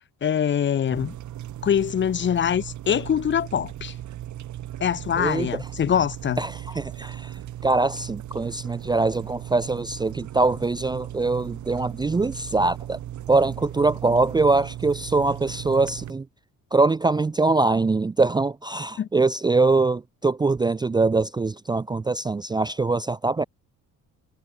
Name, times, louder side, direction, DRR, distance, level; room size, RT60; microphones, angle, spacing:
voice 1, 0.2-1.1 1.6-3.9 4.8-6.4 19.0-19.1, left 8 dB, 35° left, 1.0 m, -23 dB
sound 1, 0.9-16.1, right 12 dB, 60° right, 5.0 m, -37 dB
voice 2, 5.2-5.5 6.4-7.3 7.6-13.0 13.3-16.3 16.7-23.4, right 3 dB, 15° right, 0.5 m, -23 dB
cardioid pair, 130°, 33 cm